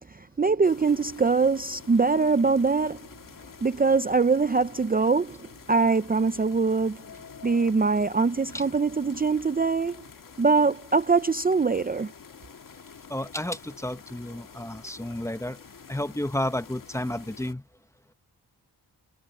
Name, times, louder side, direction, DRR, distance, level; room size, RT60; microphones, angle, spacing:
voice 1, 0.1-3.0 3.6-7.0 7.4-10.0 10.4-12.1, right 4 dB, 25° right, 0.6 m, -23 dB
sound 1, 0.6-17.5, left 6 dB, 55° left, 1.9 m, -48 dB
voice 2, 13.1-15.6 15.9-17.6, left 1 dB, 5° left, 0.9 m, -31 dB
wide cardioid pair, 95°, 39 cm